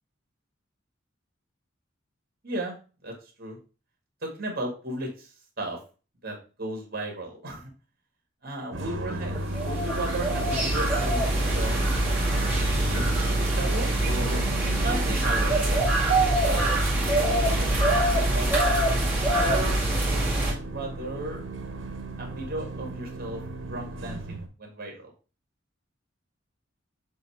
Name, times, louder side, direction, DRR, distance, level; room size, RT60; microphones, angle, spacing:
voice 1, 2.4-2.8 3.0-3.6 4.2-5.8 6.2-7.7 8.4-11.8 12.6-18.8 19.4-21.4 22.2-23.4 23.7-25.1, right 1 dB, 50° right, 0 dB, 2.0 m, -36 dB
sound 1, 8.7-24.5, right 2 dB, 70° right, 1.0 m, -36 dB
sound 2, 9.3-20.5, right 1 dB, 10° right, 2.3 m, -24 dB
6.9 x 3.2 x 4.7 m, 0.35 s
head